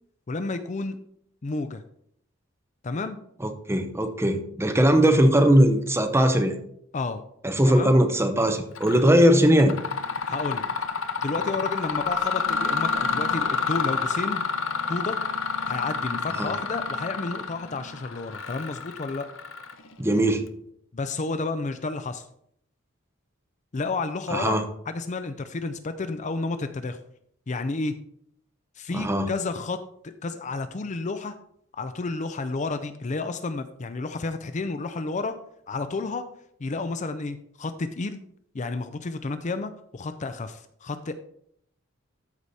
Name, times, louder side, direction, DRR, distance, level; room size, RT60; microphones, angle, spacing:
voice 1, 0.3-1.0 1.4-1.8 2.8-3.2 6.9-7.2 7.7-7.9 10.3-10.6 11.2-14.4 14.9-15.2 15.6-19.3 20.9-22.2 23.7-24.6 24.9-27.0 27.5-27.9 28.8-31.3 31.7-35.3 35.7-36.2 36.6-38.2 38.5-41.1, left 3 dB, 35° left, 10 dB, 0.5 m, -31 dB
voice 2, 3.4-6.5 7.4-9.7 16.4-16.5 20.0-20.4 24.3-24.6 28.9-29.3, equal, 10° right, 6 dB, 0.9 m, -20 dB
Mechanisms, 8.8-9.1 9.5-20.0, left 5 dB, 65° left, 0.8 m, -29 dB
13.5 x 4.9 x 4.2 m, 0.69 s
head